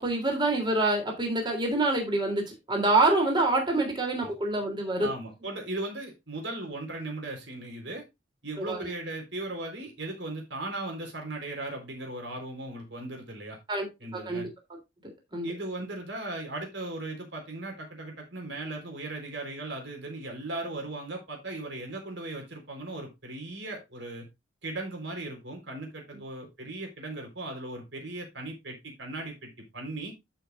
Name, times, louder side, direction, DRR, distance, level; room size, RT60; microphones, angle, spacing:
voice 1, 0.0-5.1 8.6-8.9 13.7-13.9 14.1-14.5 15.0-15.5, right 2 dB, 25° right, 3 dB, 3.3 m, -26 dB
voice 2, 5.0-8.0 8.4-13.6 14.0-14.5 15.4-24.3 24.6-30.1, right 2 dB, 75° right, 2 dB, 4.2 m, -37 dB
13.0 x 6.2 x 2.6 m, 0.22 s
head